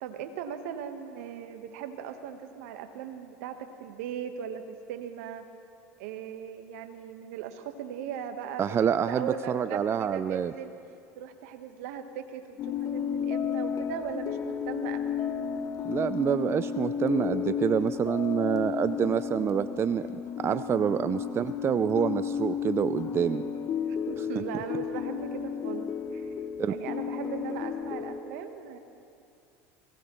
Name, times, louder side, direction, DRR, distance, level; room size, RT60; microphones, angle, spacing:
voice 1, 0.0-5.5 6.0-10.7 11.2-15.0 23.8-26.3 26.7-28.8, right 8 dB, 70° right, 8 dB, 1.2 m, -39 dB
voice 2, 8.6-10.5 15.8-20.1 20.4-23.4 26.6-26.7, right 8 dB, 30° right, 13 dB, 0.4 m, -27 dB
sound 1, 12.6-28.2, left 7 dB, 45° left, 0.9 m, -33 dB
20.5 x 17.5 x 3.1 m, 2.6 s
hypercardioid pair, 85°, 8 cm